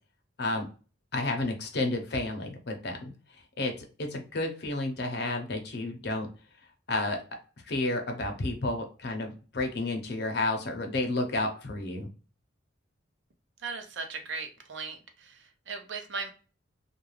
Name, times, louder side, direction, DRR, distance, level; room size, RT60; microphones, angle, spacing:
voice 1, 1.1-3.1 3.6-6.3 6.9-7.2 7.6-12.1, left 2 dB, 60° left, 3 dB, 0.7 m, -31 dB
voice 2, 13.6-16.3, right 4 dB, 75° right, 5 dB, 0.6 m, -38 dB
2.4 x 2.3 x 3.1 m, 0.36 s
head